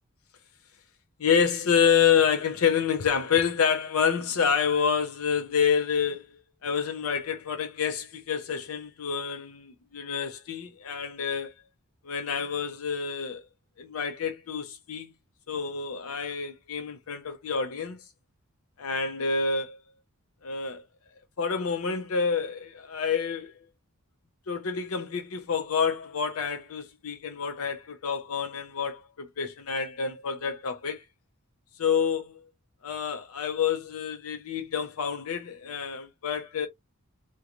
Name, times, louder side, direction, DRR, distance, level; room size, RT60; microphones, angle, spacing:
voice 1, 1.2-6.3 6.6-11.5 12.0-13.4 13.8-15.1 15.5-18.0 18.8-19.8 20.4-20.8 21.4-23.5 24.5-31.0 31.8-32.4 32.8-36.7, left 6 dB, 75° left, 0.6 m, -28 dB
2.9 x 2.2 x 2.3 m
head